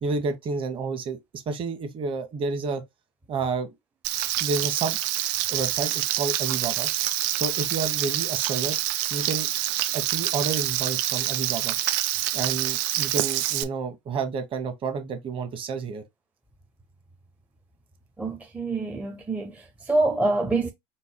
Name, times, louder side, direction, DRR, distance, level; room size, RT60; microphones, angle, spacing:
voice 1, 0.0-2.8 3.3-3.7 4.4-5.0 5.5-6.9 7.3-8.8 9.1-9.5 9.9-11.7 12.3-16.0, right 4 dB, 35° right, 1.2 m, -30 dB
Frying (food), 4.0-13.6, right 14 dB, 65° right, 0.6 m, -26 dB
voice 2, 18.2-20.7, right 2 dB, 10° right, 0.5 m, -26 dB
4.5 x 2.0 x 4.4 m
supercardioid pair, 125°, 16 cm